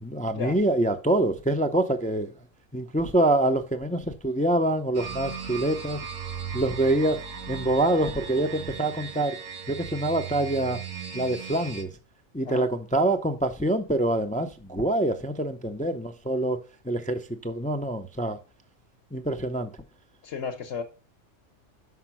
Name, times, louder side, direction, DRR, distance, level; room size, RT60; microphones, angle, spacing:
voice 1, 0.0-2.3 2.7-6.0 6.5-7.2 7.5-9.4 9.7-10.8 11.1-11.9 12.3-16.6 16.8-18.4 19.1-19.7, right 1 dB, 10° left, 0.4 m, -25 dB
sound 1, 4.9-11.8, right 7 dB, 85° right, 1.4 m, -37 dB
voice 2, 20.2-20.8, left 6 dB, 60° left, 1.2 m, -33 dB
6.0 x 5.9 x 5.8 m
omnidirectional pair, 1.3 m